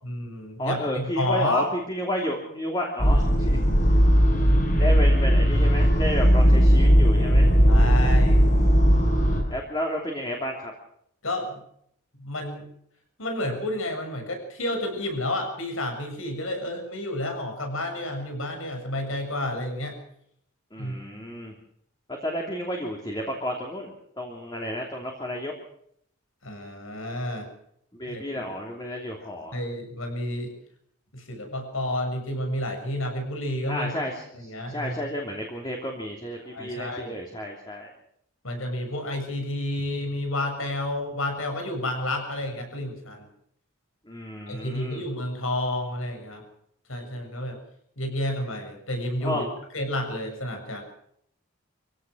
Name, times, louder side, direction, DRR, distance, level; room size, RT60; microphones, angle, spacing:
voice 1, 0.0-1.7 7.7-8.5 11.2-11.6 12.2-12.6 13.2-19.9 20.8-21.0 26.4-27.5 28.1-28.2 29.5-30.5 31.1-33.9 34.3-34.9 36.4-37.2 38.4-43.3 44.5-46.4 46.9-47.6 48.0-49.5 49.7-50.8, left 1 dB, 75° left, 5 dB, 7.2 m, -30 dB
voice 2, 0.6-3.6 4.8-7.6 9.5-10.7 20.7-21.5 22.1-25.5 28.0-29.6 33.6-37.9 44.1-45.0 49.2-49.4, equal, 20° left, 0 dB, 3.1 m, -31 dB
sound 1, 3.0-9.4, equal, 35° left, 6.1 m, -18 dB
25.0 x 16.5 x 6.4 m, 0.70 s
head